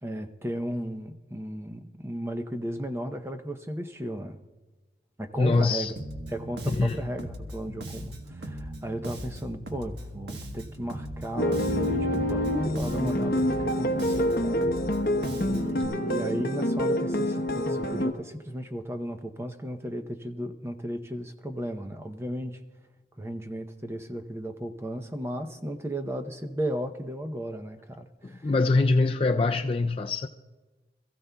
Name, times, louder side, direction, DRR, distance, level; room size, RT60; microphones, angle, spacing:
voice 1, 0.0-4.4 5.2-5.9 6.3-15.1 15.4-22.6 23.2-28.5, right 1 dB, 15° right, 0.7 m, -35 dB
voice 2, 5.4-5.9 6.8-7.0 28.2-30.3, left 3 dB, 30° left, 0.4 m, -24 dB
Bass guitar, 6.0-15.8, equal, 75° right, 1.3 m, -40 dB
sound 1, 11.4-18.1, left 1 dB, 50° left, 1.0 m, -27 dB
26.5 x 15.0 x 2.3 m
head